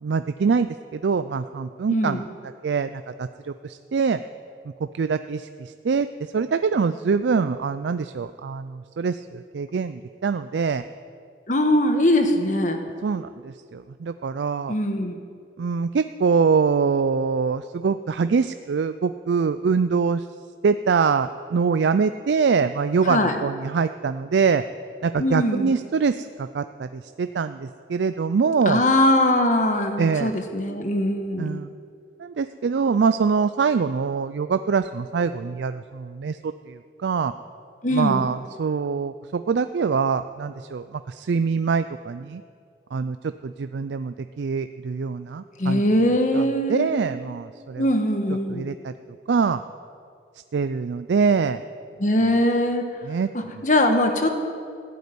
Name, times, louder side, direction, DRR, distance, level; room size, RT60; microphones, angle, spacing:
voice 1, 0.0-2.2 2.6-4.2 4.9-10.8 13.0-14.7 15.6-20.3 20.6-24.6 25.0-28.8 30.0-30.3 31.4-31.7 32.2-37.3 37.9-42.4 42.9-45.8 46.3-47.8 48.5-48.9 49.3-49.6 50.5-51.6 53.1-53.3 53.5-53.6, right 5 dB, 85° right, 11 dB, 0.4 m, -24 dB
voice 2, 1.9-2.2 11.5-12.8 14.7-15.2 23.0-23.4 25.2-25.7 28.6-31.6 37.8-38.2 45.6-46.9 47.8-48.7 52.0-52.8 53.3-54.3, left 1 dB, 45° left, 5 dB, 1.4 m, -21 dB
15.0 x 8.3 x 9.4 m, 2.3 s
head